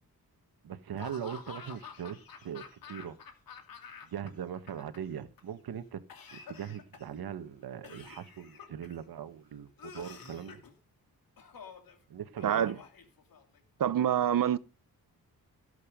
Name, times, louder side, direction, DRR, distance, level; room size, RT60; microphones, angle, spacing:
voice 1, 0.6-3.2 4.0-6.0 6.3-10.6 12.1-12.8, right 8 dB, 80° right, 1.6 m, -40 dB
Laughter / Cough, 1.0-4.3 4.5-5.4 6.1-7.2 7.8-9.0 9.8-10.7 11.4-11.9 12.4-13.6, left 6 dB, 70° left, 2.8 m, -49 dB
voice 2, 12.4-12.7 13.8-14.6, right 10 dB, 60° right, 0.8 m, -26 dB
17.5 x 8.3 x 5.3 m
wide cardioid pair, 180°, 37 cm